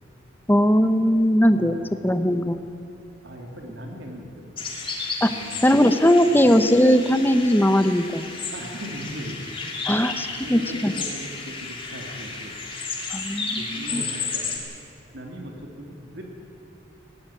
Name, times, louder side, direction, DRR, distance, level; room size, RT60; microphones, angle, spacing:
voice 1, 0.5-2.6 5.2-5.3 5.6-8.2 9.9-10.9 13.1-14.0, equal, 10° left, 10 dB, 0.7 m, -19 dB
voice 2, 1.5-2.0 3.2-4.5 5.3-5.7 6.2-6.5 8.5-9.6 10.4-12.6 13.6-14.5 15.1-16.2, equal, 65° right, 1 dB, 2.8 m, -39 dB
sound 1, 4.6-14.6, left 4 dB, 25° left, 2.7 m, -33 dB
17.5 x 17.5 x 9.8 m, 2.8 s
head